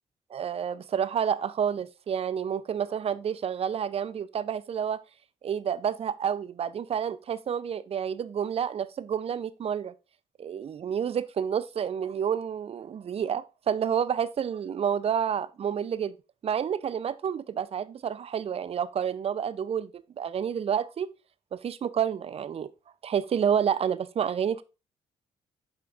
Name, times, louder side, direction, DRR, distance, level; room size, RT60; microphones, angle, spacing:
voice 1, 0.3-5.0 5.4-9.9 10.4-16.2 16.4-19.9 20.2-21.1 21.5-22.7 23.0-24.6, right 8 dB, 50° right, 0.5 m, -29 dB
5.8 x 4.5 x 3.8 m
supercardioid pair, 65°, 13 cm